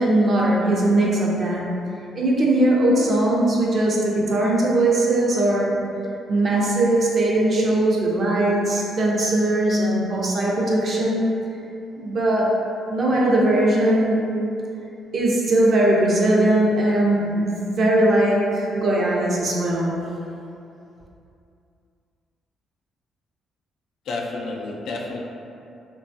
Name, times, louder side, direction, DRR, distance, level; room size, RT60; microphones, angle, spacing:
voice 1, 0.0-1.7 2.1-5.7 6.3-11.3 12.0-12.5 12.9-14.3 15.1-19.9, right 1 dB, 45° right, -3 dB, 0.6 m, -20 dB
voice 2, 24.1-25.2, left 3 dB, 70° left, -2 dB, 0.4 m, -30 dB
3.0 x 2.3 x 2.6 m, 2.7 s
cardioid pair, 90°, 0 cm